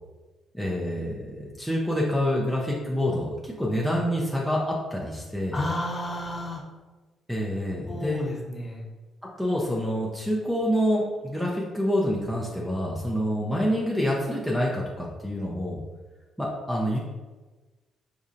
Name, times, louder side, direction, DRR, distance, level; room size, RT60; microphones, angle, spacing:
voice 1, 0.5-5.6 7.3-8.2 9.4-15.8 16.4-17.0, equal, 5° right, -4 dB, 0.5 m, -27 dB
voice 2, 5.5-6.6 7.9-8.8, left 1 dB, 30° left, -3 dB, 0.8 m, -31 dB
4.3 x 2.6 x 2.5 m, 1.2 s
cardioid pair, 90°, 0 cm